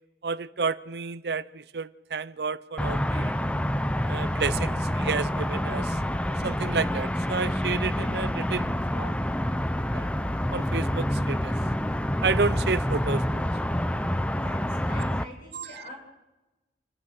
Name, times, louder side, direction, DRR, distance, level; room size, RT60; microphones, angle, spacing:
voice 1, 0.2-3.3 4.1-6.0 6.4-9.1 9.9-10.1 10.5-11.5 12.2-13.4 15.5-15.7, right 4 dB, 65° right, 0.7 m, -30 dB
sound 1, 2.8-15.2, equal, 5° left, 0.6 m, -27 dB
voice 2, 14.3-15.9, left 1 dB, 55° left, 7.6 m, -45 dB
28.0 x 15.5 x 6.6 m
head